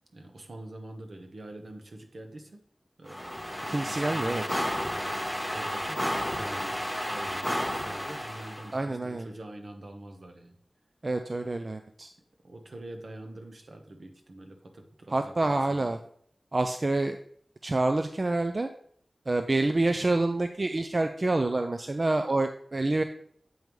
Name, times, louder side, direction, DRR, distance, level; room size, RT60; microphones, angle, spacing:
voice 1, 0.1-2.6 3.0-4.7 5.5-6.8 7.0-10.5 12.4-16.0, right 1 dB, 70° right, 4 dB, 1.0 m, -45 dB
sound 1, 3.1-8.8, equal, 5° right, 1.0 m, -32 dB
voice 2, 3.7-4.6 8.7-9.3 11.0-12.1 15.1-16.0 16.5-17.2 17.6-18.7 19.3-23.0, right 2 dB, 45° right, 7 dB, 0.4 m, -27 dB
7.7 x 5.2 x 3.1 m, 0.63 s
wide cardioid pair, 65°, 0 cm